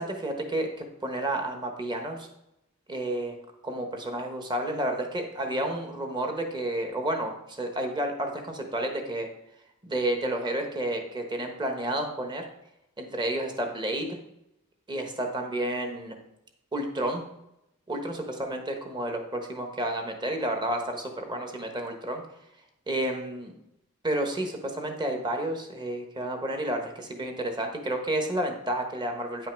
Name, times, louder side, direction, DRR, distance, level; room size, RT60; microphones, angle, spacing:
voice 1, 0.0-2.3 2.9-3.4 3.6-9.3 9.8-12.4 13.0-14.2 14.9-16.2 16.7-17.2 17.9-22.2 22.9-23.5 24.0-29.5, right 1 dB, 20° right, 4 dB, 1.1 m, -31 dB
9.3 x 5.6 x 4.5 m, 0.85 s
head